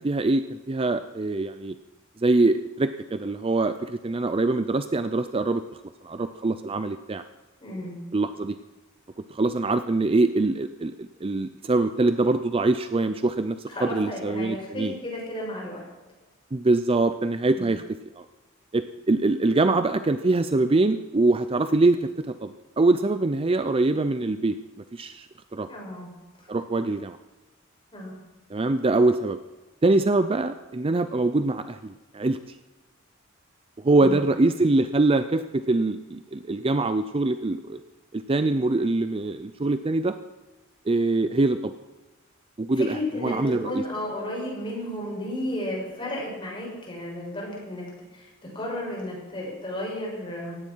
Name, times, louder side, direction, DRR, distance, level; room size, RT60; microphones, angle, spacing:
voice 1, 0.0-1.8 2.2-5.6 6.0-7.2 8.1-8.6 9.3-14.9 16.5-17.8 18.2-18.3 18.7-24.6 24.9-25.3 25.5-25.7 26.5-27.2 28.5-29.4 29.8-32.6 33.8-37.8 38.1-40.2 40.9-41.7 42.6-43.8, right 2 dB, 25° right, 10 dB, 0.5 m, -24 dB
voice 2, 7.6-8.0 13.7-15.8 17.5-17.7 25.7-26.1 27.9-28.1 33.9-34.2 42.8-47.9 48.1-48.3 48.5-50.6, left 1 dB, 25° left, -3 dB, 6.8 m, -33 dB
17.5 x 16.5 x 4.6 m, 1.1 s
head